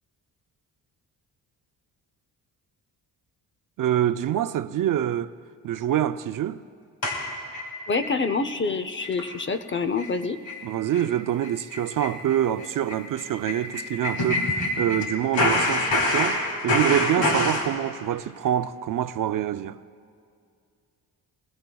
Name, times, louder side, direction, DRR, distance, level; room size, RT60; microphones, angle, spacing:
voice 1, 3.8-5.3 5.6-6.6 10.6-19.8, right 11 dB, 55° right, 0.5 m, -26 dB
sound 1, 7.0-8.2 8.5-8.6 9.0-9.2 9.5-9.6 10.0-10.1 10.4-10.6 10.9-11.1 11.4-15.0 15.3-17.7, left 1 dB, 65° left, 3.0 m, -26 dB
voice 2, 7.9-10.4 17.2-17.3, left 4 dB, 30° left, 0.6 m, -26 dB
24.5 x 20.5 x 2.3 m
cardioid pair, 110°, 39 cm